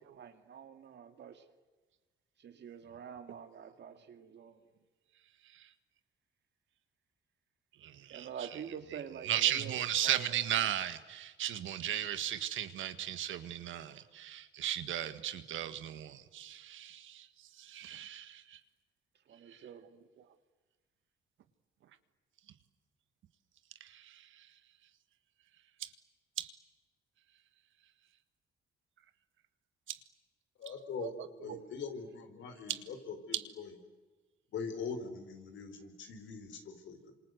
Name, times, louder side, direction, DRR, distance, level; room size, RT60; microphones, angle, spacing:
voice 1, 0.0-1.4 2.4-4.6 8.1-10.3 19.3-19.8, right 8 dB, 60° right, 8 dB, 2.2 m, -47 dB
voice 2, 7.8-18.6 19.5-19.7 20.2-20.3 23.8-24.5 25.8-25.9 26.4-26.5 29.9-30.0 30.7-31.6 32.7-32.8 33.3-33.5, right 11 dB, 75° right, 10 dB, 1.8 m, -37 dB
voice 3, 30.6-31.1 31.4-33.7 34.5-37.1, left 5 dB, 70° left, 7 dB, 4.4 m, -42 dB
28.5 x 26.5 x 8.0 m, 1.3 s
cardioid pair, 90°, 20 cm